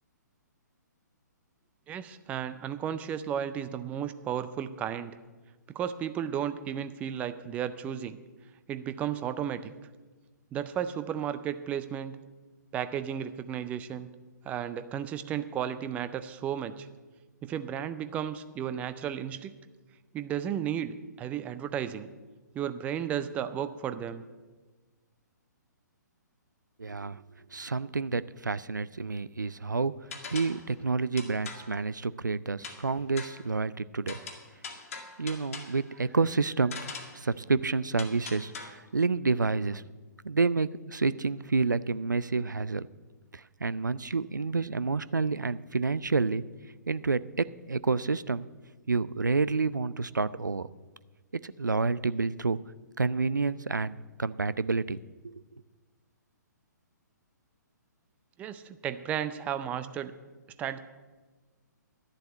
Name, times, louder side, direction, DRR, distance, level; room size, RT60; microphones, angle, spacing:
voice 1, 1.9-5.1 5.7-8.2 8.7-9.7 10.5-12.1 12.7-14.1 14.4-16.9 17.4-19.5 20.1-22.1 22.5-24.2 58.4-60.1 60.6-60.8, right 9 dB, 15° right, 12 dB, 0.5 m, -34 dB
voice 2, 26.8-27.2 27.5-29.9 30.3-34.2 35.2-36.8 37.1-39.8 40.2-42.9 43.3-46.4 46.9-48.5 48.9-50.7 51.4-52.6 53.0-55.0 55.2-55.6, right 4 dB, 75° right, 17 dB, 0.4 m, -29 dB
sound 1, 30.1-30.7 31.2-31.8 32.6-32.9 33.2-33.5 34.1-35.8 36.7-37.2 38.0-38.7, left 4 dB, 45° left, 1.7 m, -42 dB
11.5 x 7.7 x 8.4 m, 1.3 s
figure-of-eight pair, 125°, 10 cm